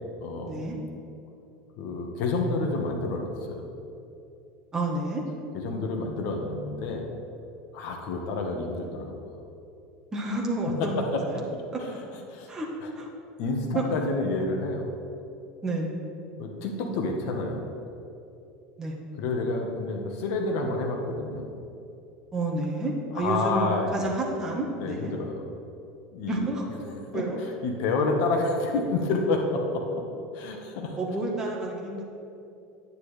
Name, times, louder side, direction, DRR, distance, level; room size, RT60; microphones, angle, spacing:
voice 1, 0.2-0.6 1.8-3.7 5.5-7.1 7.7-9.1 11.0-11.2 11.5-11.6 12.3-12.5 12.8-12.9 13.4-14.9 16.4-17.6 19.2-21.5 23.1-24.1 24.8-25.4 26.1-26.5 27.1-30.1 30.3-31.0, left 3 dB, 55° left, 2 dB, 1.3 m, -29 dB
voice 2, 4.7-5.2 10.1-11.4 11.7-11.8 12.5-12.7 13.0-13.1 13.7-13.8 15.6-15.9 18.8-19.0 22.3-25.1 26.3-27.4 31.0-32.0, right 2 dB, 15° right, -2 dB, 1.3 m, -30 dB
9.7 x 9.6 x 3.4 m, 2.8 s
supercardioid pair, 150°, 4 cm